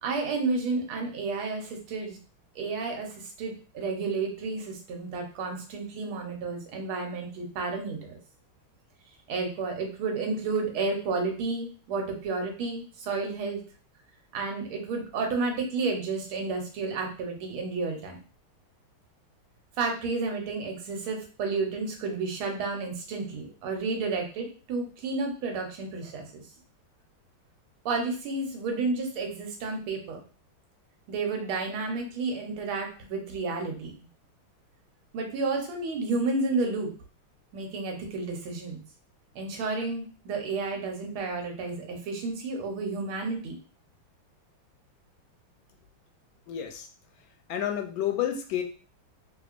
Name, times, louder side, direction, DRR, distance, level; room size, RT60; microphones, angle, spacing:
voice 1, 0.0-2.2 2.5-8.2 9.3-13.6 14.3-18.2 19.8-26.4 27.8-30.2 31.1-33.9 35.1-36.9 37.5-38.8 39.3-43.5, right 3 dB, 90° right, 2 dB, 1.7 m, -31 dB
voice 2, 46.5-46.9 47.5-48.6, left 10 dB, 75° left, 5 dB, 1.2 m, -30 dB
3.6 x 3.2 x 2.4 m, 0.38 s
omnidirectional pair, 2.3 m